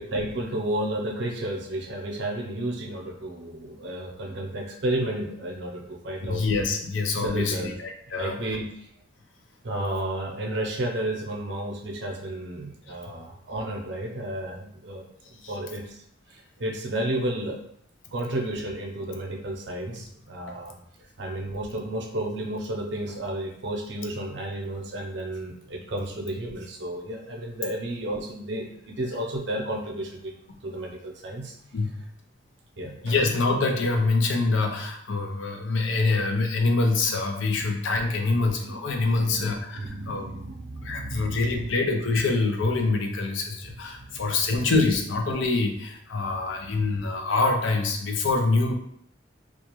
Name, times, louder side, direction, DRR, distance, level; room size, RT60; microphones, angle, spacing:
voice 1, 0.0-6.4 7.2-7.7 8.1-8.9 9.6-16.0 16.3-17.6 18.1-30.3 30.6-31.5 32.8-33.1 38.2-41.7 44.1-44.2 44.5-44.6, right 1 dB, 65° right, 1 dB, 0.6 m, -32 dB
voice 2, 6.2-8.4 15.4-15.5 30.5-30.6 31.7-31.9 33.0-40.3 40.8-48.7, left 3 dB, 85° left, 3 dB, 0.5 m, -25 dB
2.4 x 2.3 x 2.9 m, 0.71 s
head